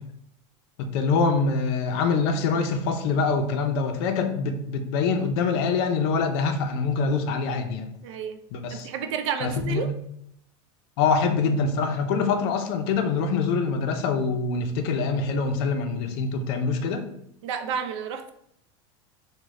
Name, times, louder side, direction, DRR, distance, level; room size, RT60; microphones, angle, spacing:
voice 1, 0.8-7.9 8.5-8.9 9.4-9.9 11.0-17.0, left 4 dB, 65° left, 6 dB, 0.5 m, -25 dB
voice 2, 8.0-8.4 8.7-9.9 17.4-18.3, right 7 dB, 85° right, 8 dB, 0.4 m, -30 dB
3.0 x 2.1 x 3.6 m, 0.73 s
supercardioid pair, 140°, 15 cm